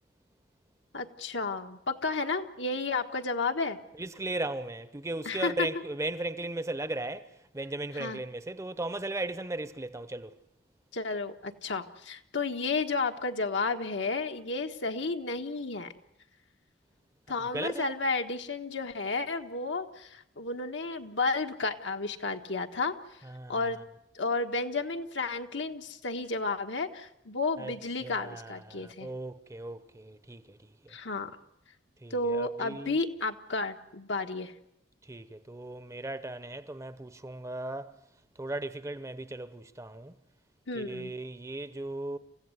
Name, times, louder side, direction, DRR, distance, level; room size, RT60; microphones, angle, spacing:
voice 1, 0.9-3.8 5.2-5.7 7.9-8.2 10.9-15.9 17.3-22.9 23.5-23.8 24.1-29.1 30.9-31.3 32.1-34.5 40.7-41.1, left 3 dB, 80° left, 1.5 m, -32 dB
voice 2, 4.0-7.3 7.5-10.3 17.5-17.9 23.3-23.6 27.6-27.7 28.0-30.6 32.0-32.9 35.1-37.9 38.4-40.1 40.8-42.2, right 2 dB, 15° right, 0.8 m, -36 dB
28.0 x 15.5 x 8.0 m
head